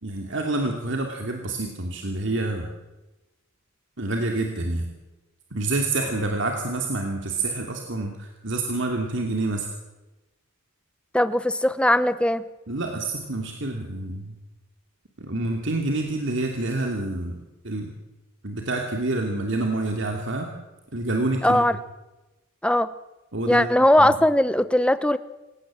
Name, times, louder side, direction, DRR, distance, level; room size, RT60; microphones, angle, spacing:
voice 1, 0.0-2.7 4.0-4.9 5.5-9.7 12.7-14.4 15.2-17.4 17.6-17.9 18.4-20.5 20.9-21.6 23.3-23.7 24.0-24.2, right 2 dB, 60° right, 2 dB, 2.7 m, -27 dB
voice 2, 11.1-12.4 21.4-21.7 22.6-22.9 23.5-25.2, left 1 dB, 5° left, 14 dB, 0.8 m, -19 dB
27.0 x 17.5 x 7.6 m, 1.1 s
head